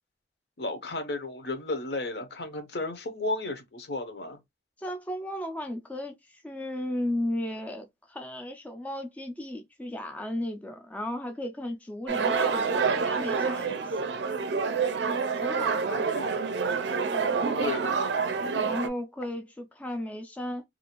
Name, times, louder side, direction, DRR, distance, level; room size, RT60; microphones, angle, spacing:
voice 1, 0.6-4.4 16.0-16.3 17.6-17.9, left 2 dB, 65° left, 0.7 m, -33 dB
voice 2, 4.8-14.1 15.4-16.1 17.1-17.4 18.5-20.6, left 1 dB, 10° left, 0.3 m, -35 dB
sound 1, 12.1-18.9, right 5 dB, 75° right, 0.4 m, -27 dB
2.6 x 2.4 x 2.9 m
head